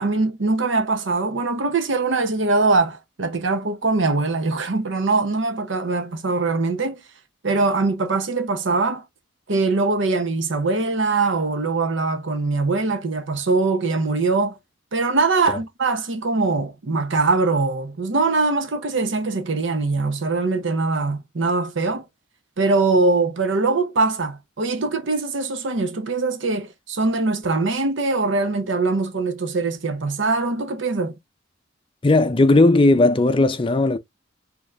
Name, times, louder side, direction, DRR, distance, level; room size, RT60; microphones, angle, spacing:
voice 1, 0.0-7.0 7.4-9.0 9.5-14.6 14.9-22.0 22.6-31.1, right 3 dB, 70° right, 0.8 m, -22 dB
voice 2, 32.0-34.0, left 2 dB, 25° left, 0.4 m, -16 dB
4.1 x 2.8 x 2.4 m
head